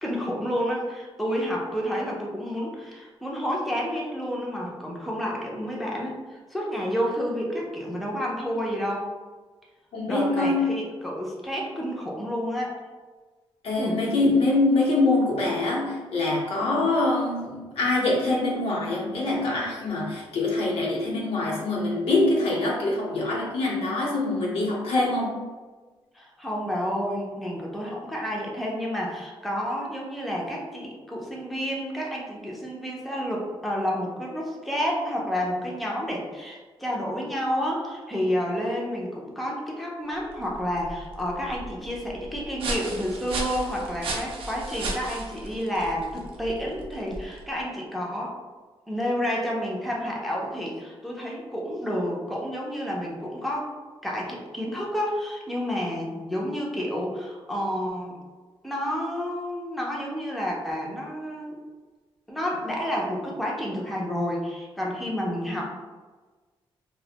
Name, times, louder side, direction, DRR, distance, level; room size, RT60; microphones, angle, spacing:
voice 1, 0.0-9.1 10.1-12.8 13.8-14.0 16.6-16.9 26.1-48.4 48.9-53.7 54.0-58.2 58.6-61.6 62.3-65.7, equal, ahead, -3 dB, 0.4 m, -30 dB
voice 2, 9.9-10.7 13.6-25.3, left 2 dB, 90° left, -3 dB, 0.7 m, -24 dB
sound 1, 40.2-47.6, right 2 dB, 70° right, 0.4 m, -36 dB
2.4 x 2.0 x 2.7 m, 1.3 s
wide cardioid pair, 155°, 9 cm